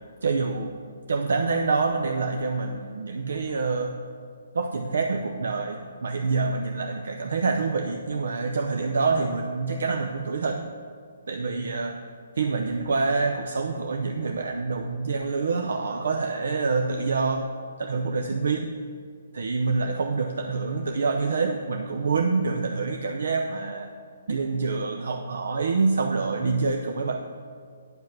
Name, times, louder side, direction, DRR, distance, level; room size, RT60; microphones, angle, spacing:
voice 1, 0.2-0.7 1.1-4.0 4.5-10.7 11.3-12.0 12.4-17.5 17.8-18.7 19.3-23.9 24.3-27.2, right 4 dB, 75° right, 4 dB, 0.6 m, -26 dB
9.0 x 5.5 x 5.9 m, 2.1 s
hypercardioid pair, 155°, 0 cm